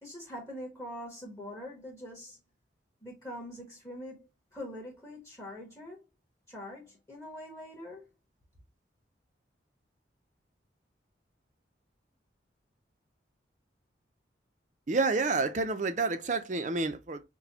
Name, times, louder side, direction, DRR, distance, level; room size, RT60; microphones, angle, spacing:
voice 1, 0.0-2.4 3.0-6.0 6.5-8.1, left 1 dB, 15° left, 1.3 m, -43 dB
voice 2, 14.9-17.2, right 3 dB, 40° right, 0.5 m, -29 dB
6.0 x 2.2 x 2.8 m
head